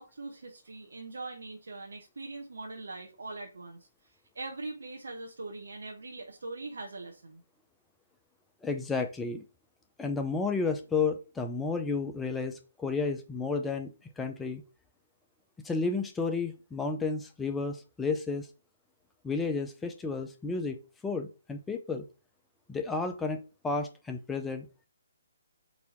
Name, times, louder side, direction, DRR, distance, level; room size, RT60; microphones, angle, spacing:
voice 1, 0.0-3.8 4.3-7.4, right 3 dB, 70° right, 0.9 m, -42 dB
voice 2, 8.6-9.4 10.0-14.6 15.6-18.5 19.2-20.8 21.0-22.0 22.7-24.9, left 4 dB, 10° left, 0.5 m, -32 dB
4.1 x 2.7 x 4.3 m
figure-of-eight pair, 140°, 0 cm